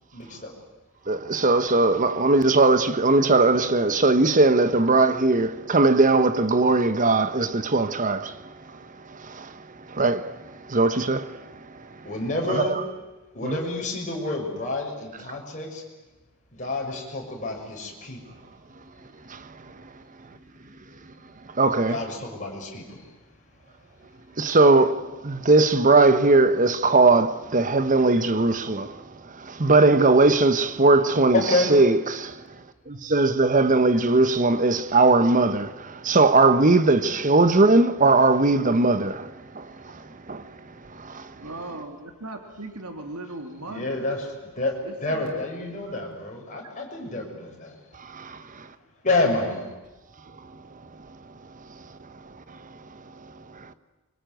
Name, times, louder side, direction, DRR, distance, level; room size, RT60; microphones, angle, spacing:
voice 1, 0.1-0.5 12.0-12.8 13.3-15.8 16.6-18.2 21.9-23.0 31.3-31.7 43.6-44.7 45.0-47.8 49.0-49.6, left 2 dB, 35° left, 6.4 m, -28 dB
voice 2, 1.1-8.5 9.1-9.6 9.9-11.4 12.5-12.8 13.4-13.6 19.3-19.5 21.5-22.1 24.4-29.0 29.3-31.4 31.7-32.4 32.9-40.5 40.9-41.3 48.0-48.4, right 3 dB, 35° right, 1.2 m, -20 dB
voice 3, 41.4-44.1 44.8-46.0, right 2 dB, 85° right, 2.9 m, -38 dB
25.5 x 24.0 x 9.3 m
head